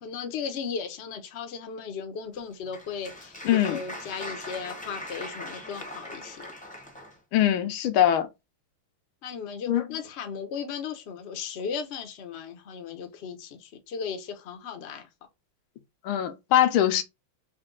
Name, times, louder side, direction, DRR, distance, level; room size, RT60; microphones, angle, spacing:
voice 1, 0.0-6.5 9.2-15.1, left 6 dB, 65° left, 0.6 m, -36 dB
Applause, 2.3-7.2, left 1 dB, 10° left, 0.5 m, -40 dB
voice 2, 3.4-3.8 7.3-8.3 9.7-9.8 16.0-17.0, left 11 dB, 80° left, 1.4 m, -22 dB
4.3 x 2.2 x 3.7 m
omnidirectional pair, 2.3 m